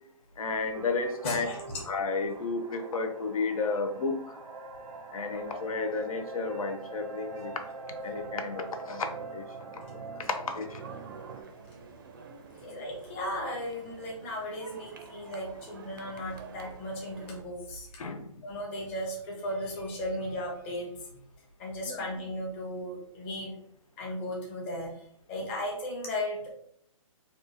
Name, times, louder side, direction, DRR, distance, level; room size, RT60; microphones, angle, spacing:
voice 1, 0.4-1.5 1.9-4.4 5.1-7.5 8.0-9.5 9.7-10.8 18.0-18.3 21.9-22.0, left 4 dB, 85° left, 6 dB, 0.6 m, -32 dB
sound 1, 0.7-11.4, right 3 dB, 85° right, 0.6 m, -43 dB
voice 2, 1.2-1.6 5.3-5.4 12.6-17.9 18.4-21.2 21.6-23.5 24.0-26.5, left 1 dB, 20° left, -2 dB, 0.7 m, -36 dB
sound 2, 10.8-17.4, right 5 dB, 40° right, 0.4 m, -49 dB
3.5 x 2.4 x 2.8 m, 0.67 s
hypercardioid pair, 170°, 18 cm